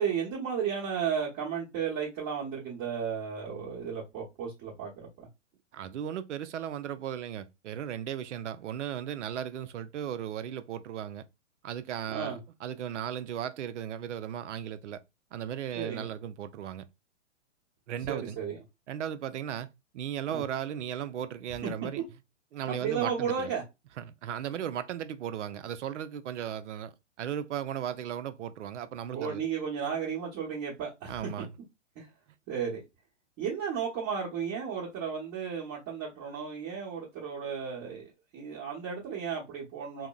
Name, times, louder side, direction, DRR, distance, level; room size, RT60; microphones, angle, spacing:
voice 1, 0.0-5.3 12.1-12.4 15.7-16.0 18.1-18.6 20.3-20.4 21.6-21.7 22.7-23.6 29.1-31.2 32.0-32.1 32.5-32.8 33.4-40.1, right 7 dB, 30° right, 1.0 m, -34 dB
voice 2, 5.7-11.2 11.6-15.0 15.3-16.8 17.9-18.4 18.9-19.7 19.9-22.0 22.5-23.5 24.0-29.4 31.1-31.5, right 9 dB, 70° right, 0.5 m, -36 dB
3.6 x 2.0 x 2.3 m
hypercardioid pair, 130°, 37 cm